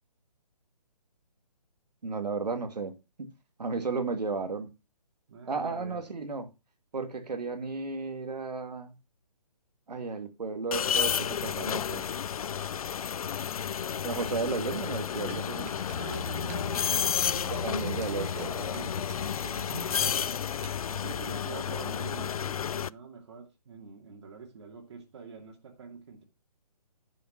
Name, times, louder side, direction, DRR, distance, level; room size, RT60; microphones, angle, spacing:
voice 1, 2.0-2.9 3.2-3.3 3.6-4.7 5.5-6.5 6.9-8.9 9.9-12.1 14.0-15.7 17.5-18.5, right 4 dB, 85° right, 2.2 m, -33 dB
voice 2, 5.3-6.0 13.3-14.6 16.0-20.5 20.9-26.2, right 5 dB, 45° right, 2.5 m, -45 dB
sound 1, 10.7-22.9, left 8 dB, 60° left, 0.4 m, -31 dB
sound 2, 15.3-20.8, right 1 dB, 25° right, 1.9 m, -45 dB
10.5 x 5.6 x 5.7 m
hypercardioid pair, 165°, 20 cm